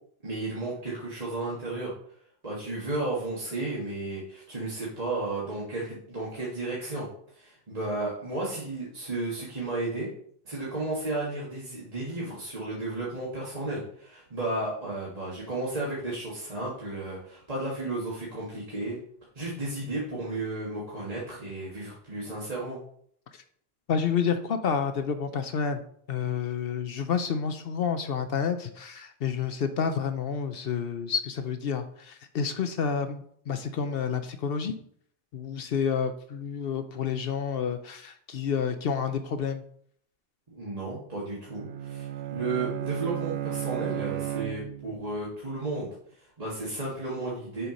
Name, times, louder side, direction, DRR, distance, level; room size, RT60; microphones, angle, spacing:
voice 1, 0.2-1.9 2.4-7.1 7.3-10.1 10.5-19.0 19.4-22.8 40.5-47.7, right 2 dB, 35° right, -6 dB, 1.7 m, -33 dB
voice 2, 23.9-25.8 26.1-34.8 35.3-39.6, left 6 dB, 65° left, 8 dB, 0.8 m, -29 dB
Bowed string instrument, 41.5-45.1, right 13 dB, 75° right, 0.8 m, -34 dB
6.8 x 4.5 x 5.2 m, 0.63 s
omnidirectional pair, 1.1 m